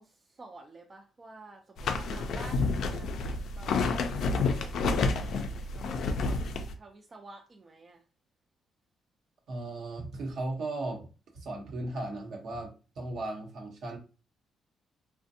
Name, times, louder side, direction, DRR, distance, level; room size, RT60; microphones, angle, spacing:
voice 1, 0.0-8.0, right 3 dB, 35° right, 1 dB, 0.4 m, -51 dB
sound 1, 1.8-6.7, left 4 dB, 70° left, 0.4 m, -29 dB
voice 2, 9.5-11.0 11.3-14.0, right 2 dB, 65° right, 1 dB, 0.9 m, -36 dB
2.5 x 2.1 x 2.6 m, 0.33 s
cardioid pair, 90°, 0 cm